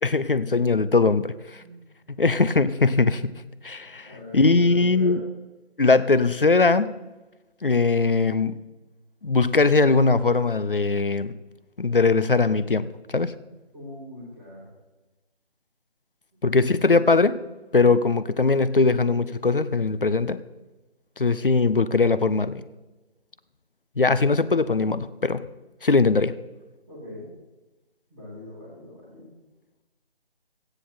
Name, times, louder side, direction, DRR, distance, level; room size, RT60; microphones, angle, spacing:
voice 1, 0.0-1.6 2.1-5.2 5.8-6.9 7.6-8.6 9.2-11.4 11.8-13.3 16.4-17.4 17.7-20.4 21.2-22.6 24.0-25.5 25.8-26.3, left 3 dB, 55° left, 14 dB, 0.7 m, -21 dB
voice 2, 1.5-1.9 4.0-5.2 13.7-14.7 26.9-27.3 28.1-29.3, left 2 dB, 5° right, -10 dB, 1.2 m, -41 dB
15.0 x 9.7 x 4.3 m, 1.1 s
figure-of-eight pair, 160°, 33 cm